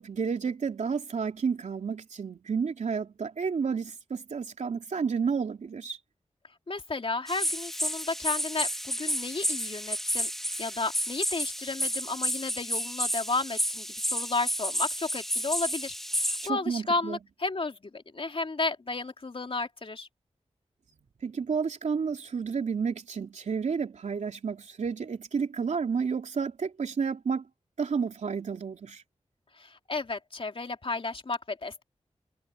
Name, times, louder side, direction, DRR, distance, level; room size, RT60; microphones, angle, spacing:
voice 1, 0.0-6.0 16.4-17.2 21.2-27.5 27.8-29.0, right 6 dB, 90° right, 3.3 m, -31 dB
voice 2, 6.7-10.3 10.6-20.1 29.6-31.8, left 3 dB, 50° left, 3.0 m, -33 dB
sound 1, 7.3-16.5, equal, 5° left, 3.6 m, -31 dB
wide cardioid pair, 65°, 12 cm